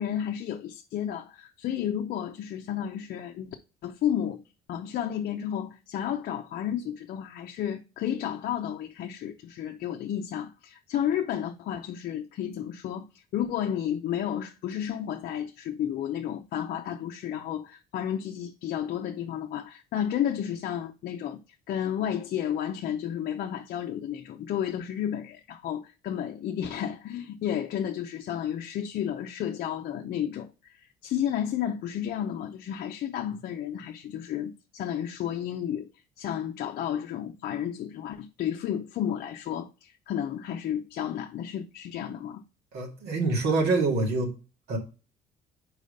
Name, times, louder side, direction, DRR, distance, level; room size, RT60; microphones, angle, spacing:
voice 1, 0.0-3.6 3.8-4.4 4.7-13.1 13.3-21.4 21.7-30.5 31.0-35.9 36.2-42.4, left 10 dB, 65° left, 0.6 m, -32 dB
voice 2, 42.7-44.3 44.7-44.8, right 3 dB, 75° right, 2.2 m, -25 dB
5.0 x 4.8 x 5.2 m
cardioid pair, 110°, 17 cm